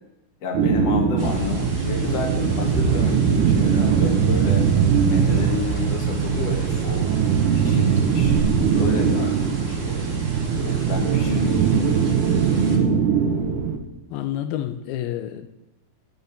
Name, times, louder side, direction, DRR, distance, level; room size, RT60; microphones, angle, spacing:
voice 1, 0.4-4.7 5.0-7.1 7.5-8.4 8.7-10.1 10.6-12.0, left 4 dB, 45° left, 1 dB, 3.3 m, -30 dB
sound 1, 0.5-13.8, right 6 dB, 65° right, 2.3 m, -21 dB
sound 2, 1.2-12.8, right 4 dB, 40° right, 1.1 m, -34 dB
voice 2, 14.1-15.5, left 12 dB, 85° left, 9 dB, 2.5 m, -29 dB
13.0 x 7.1 x 9.2 m, 0.94 s
omnidirectional pair, 4.4 m